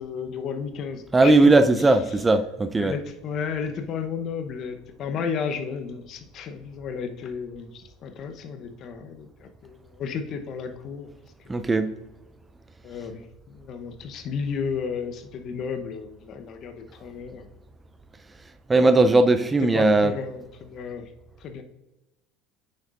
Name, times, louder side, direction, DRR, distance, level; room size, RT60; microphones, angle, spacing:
voice 1, 0.0-1.5 1.8-2.0 2.8-11.1 11.5-11.6 12.8-17.5 19.7-21.1 21.4-21.6, left 6 dB, 50° left, 7 dB, 0.9 m, -33 dB
voice 2, 1.1-3.0 11.5-11.9 18.7-20.1, right 2 dB, 20° right, 10 dB, 0.5 m, -18 dB
8.4 x 6.5 x 2.5 m, 0.99 s
hypercardioid pair, 80°, 0 cm